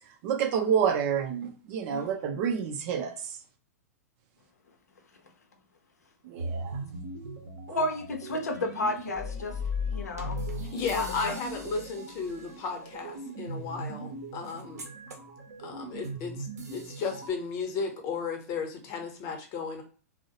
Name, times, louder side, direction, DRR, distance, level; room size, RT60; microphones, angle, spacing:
voice 1, 0.2-3.1 6.2-6.8 7.7-7.8, right 7 dB, 45° right, 5 dB, 0.5 m, -28 dB
sound 1, 6.4-17.3, right 3 dB, 80° right, 0.7 m, -40 dB
voice 2, 7.7-9.5 9.9-10.5 10.9-11.3, left 2 dB, 85° left, 4 dB, 0.5 m, -32 dB
sound 2, 9.2-11.9, left 6 dB, 20° left, 0.4 m, -35 dB
voice 3, 10.7-14.9 15.6-19.8, left 5 dB, 40° left, 4 dB, 0.7 m, -34 dB
2.2 x 2.0 x 2.7 m, 0.39 s
hypercardioid pair, 110°, 9 cm